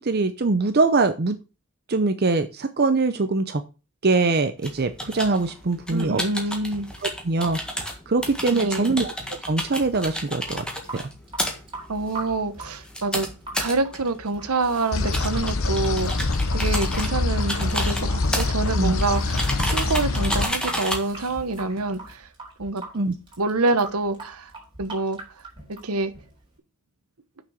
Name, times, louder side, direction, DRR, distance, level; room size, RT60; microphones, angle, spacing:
voice 1, 0.0-1.4 1.9-3.6 4.0-6.2 7.0-9.1 9.4-10.6 10.9-11.0 18.8-18.9 22.9-23.1, right 3 dB, 45° right, 0.7 m, -23 dB
sound 1, 4.6-22.1, equal, 5° left, 1.7 m, -32 dB
voice 2, 5.9-6.9 8.5-8.9 11.9-13.3 13.6-22.3 22.6-22.8 23.4-24.5 24.8-25.2 25.7-26.1, right 3 dB, 80° right, 1.0 m, -26 dB
Water tap faucet / Sink (filling or washing) / Drip, 10.6-26.6, right 2 dB, 25° right, 4.1 m, -42 dB
sound 2, 14.9-20.4, left 3 dB, 65° left, 0.9 m, -25 dB
7.2 x 6.1 x 6.3 m
head